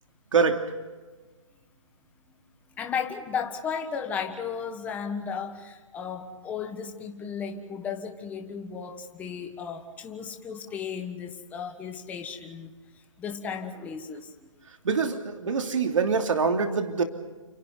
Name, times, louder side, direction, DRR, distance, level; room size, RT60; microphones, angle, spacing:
voice 1, 0.3-0.6 14.8-17.0, right 5 dB, 70° right, 4 dB, 3.0 m, -24 dB
voice 2, 2.7-12.7 13.2-14.5, left 6 dB, 10° left, 4 dB, 1.4 m, -35 dB
30.0 x 27.0 x 4.0 m, 1.3 s
hypercardioid pair, 165°, 17 cm